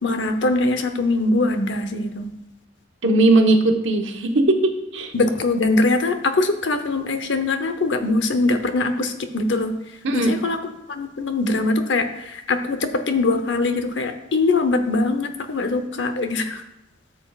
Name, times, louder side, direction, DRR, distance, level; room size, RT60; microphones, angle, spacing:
voice 1, 0.0-2.3 5.1-9.8 10.1-16.6, left 2 dB, 70° left, 8 dB, 0.8 m, -22 dB
voice 2, 3.0-5.1 10.0-10.3, right 2 dB, 85° right, 3 dB, 1.1 m, -18 dB
13.0 x 6.9 x 2.4 m, 0.84 s
head